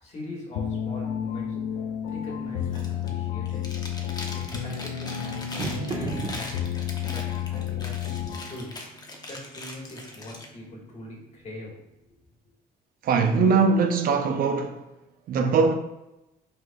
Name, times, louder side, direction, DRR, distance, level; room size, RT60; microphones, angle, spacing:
voice 1, 0.0-1.6 2.1-3.6 4.3-6.5 7.1-8.7 9.0-11.7 12.0-12.1, left 1 dB, 40° left, 1.5 m, -42 dB
sound 1, 0.5-8.6, left 9 dB, 90° left, 0.5 m, -31 dB
sound 2, 1.0-11.8, right 2 dB, 30° right, 1.0 m, -41 dB
Chewing mastication, 2.6-3.1 3.4-10.5, left 2 dB, 25° left, 0.7 m, -41 dB
voice 2, 13.0-14.8 15.3-15.7, right 4 dB, 60° right, 0.6 m, -21 dB
5.3 x 4.0 x 2.3 m
cardioid pair, 110°, 17 cm